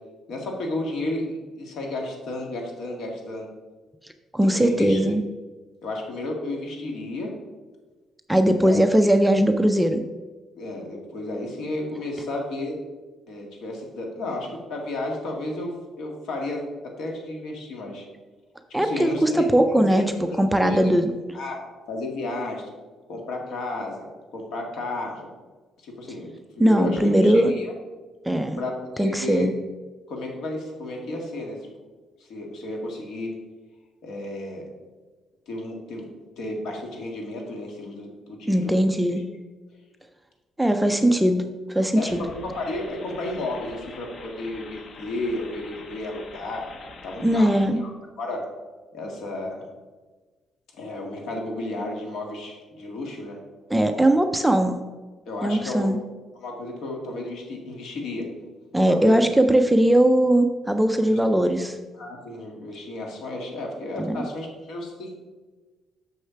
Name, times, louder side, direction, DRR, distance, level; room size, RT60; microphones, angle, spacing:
voice 1, 0.3-3.5 4.4-5.1 5.8-7.3 8.5-9.1 10.6-12.8 13.3-16.6 17.0-18.1 18.8-19.5 19.9-20.0 20.3-20.8 21.3-22.7 23.1-24.1 24.3-25.3 25.8-27.7 28.6-29.5 30.1-31.6 32.2-33.4 34.0-34.7 35.5-36.0 36.4-38.8 40.9-41.1 42.0-46.7 47.0-47.9 48.2-48.5 48.9-49.7 50.7-53.4 54.5-54.7 55.3-55.9 56.3-58.3 58.8-59.3 61.0-61.2 61.9-65.2, left 2 dB, 65° left, 1 dB, 1.8 m, -32 dB
voice 2, 4.3-5.2 8.3-10.0 18.7-21.1 26.6-27.5 28.3-28.6 29.0-29.5 38.5-39.2 40.6-41.4 41.7-42.2 47.2-47.8 53.7-54.7 55.4-56.0 58.7-61.8 64.0-64.2, right 1 dB, 5° right, 6 dB, 0.4 m, -20 dB
sound 1, 42.1-47.7, left 3 dB, 40° left, 0.7 m, -44 dB
6.6 x 6.4 x 5.7 m, 1.3 s
cardioid pair, 180°, 0 cm